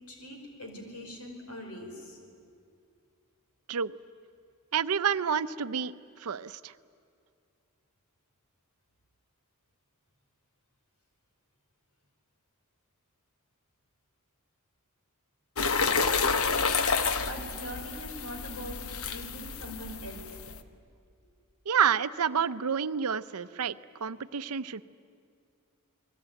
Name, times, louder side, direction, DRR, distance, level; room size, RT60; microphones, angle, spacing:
voice 1, 0.1-2.2 17.2-20.4, equal, 85° left, 3 dB, 5.1 m, -42 dB
voice 2, 4.7-5.9 6.2-6.7 21.7-23.8 24.0-24.8, right 7 dB, 75° right, 15 dB, 0.7 m, -29 dB
sound 1, 15.6-20.6, left 5 dB, 70° left, 1.1 m, -29 dB
28.0 x 21.0 x 9.2 m, 2.3 s
head